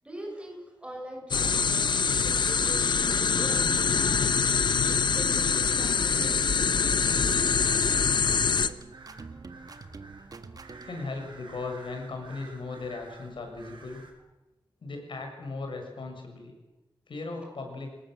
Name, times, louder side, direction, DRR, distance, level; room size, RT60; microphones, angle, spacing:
voice 1, 0.0-4.2 4.9-6.5 7.7-8.2 17.3-17.5, right 1 dB, 15° right, 2 dB, 6.8 m, -44 dB
sound 1, 1.3-8.7, left 5 dB, 65° left, 0.9 m, -24 dB
sound 2, 3.0-14.1, right 3 dB, 75° right, 5.8 m, -52 dB
sound 3, 7.1-11.1, right 4 dB, 50° right, 1.6 m, -45 dB
voice 2, 10.8-14.0 14.8-16.5 17.1-17.9, left 3 dB, 85° left, 3 dB, 6.5 m, -37 dB
27.0 x 19.5 x 7.8 m, 1.1 s
wide cardioid pair, 135°, 8 cm